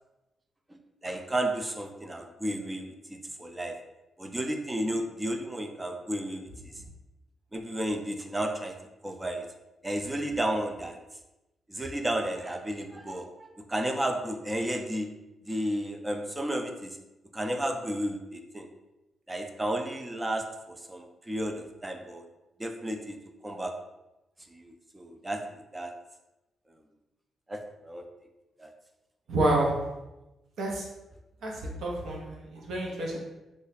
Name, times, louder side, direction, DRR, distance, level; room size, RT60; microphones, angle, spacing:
voice 1, 1.0-3.8 4.2-6.7 7.5-8.7 9.0-9.5 9.8-11.0 11.7-15.1 15.5-17.0 17.3-18.7 19.3-22.2 22.6-23.2 23.4-23.7 24.5-25.9 27.5-28.0 28.6-28.7, right 1 dB, 10° right, 5 dB, 0.3 m, -33 dB
voice 2, 29.3-29.8 30.6-30.8 31.4-33.2, right 1 dB, 70° right, -2 dB, 0.8 m, -28 dB
3.1 x 2.2 x 4.0 m, 0.98 s
cardioid pair, 150°, 0 cm